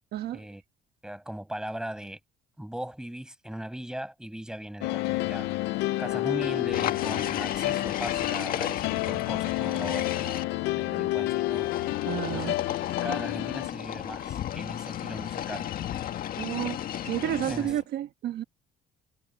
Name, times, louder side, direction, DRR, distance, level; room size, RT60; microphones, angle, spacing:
voice 1, 0.1-0.4 12.1-12.5 16.4-16.8 17.0-18.4, right 12 dB, 70° right, 1.5 m, -31 dB
voice 2, 1.0-2.2 2.6-5.6 6.0-11.7 12.3-12.6 13.0-15.7 17.5-17.7, right 1 dB, 5° right, 6.4 m, -39 dB
sound 1, 4.8-13.7, left 18 dB, 90° left, 0.7 m, -29 dB
sound 2, 6.7-10.4 11.4-17.8, left 11 dB, 60° left, 1.7 m, -34 dB
cardioid pair, 110°, 17 cm